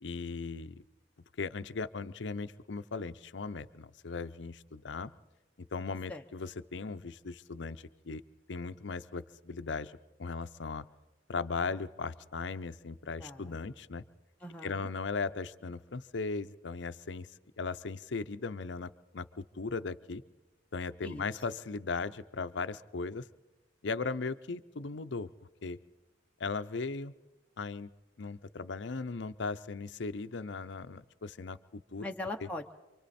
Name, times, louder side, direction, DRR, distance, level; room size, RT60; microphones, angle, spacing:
voice 1, 0.0-0.8 1.4-5.1 5.6-8.2 8.5-9.9 10.2-10.8 11.3-14.0 14.6-17.3 17.6-20.2 20.7-23.3 23.8-25.3 25.6-25.8 26.4-27.1 27.6-27.9 28.2-32.0, left 4 dB, 70° left, 13 dB, 0.6 m, -37 dB
voice 2, 13.2-13.6 14.4-14.9 21.0-21.2 32.0-32.8, left 2 dB, 5° left, 1 dB, 0.8 m, -41 dB
28.0 x 24.0 x 4.3 m, 1.1 s
head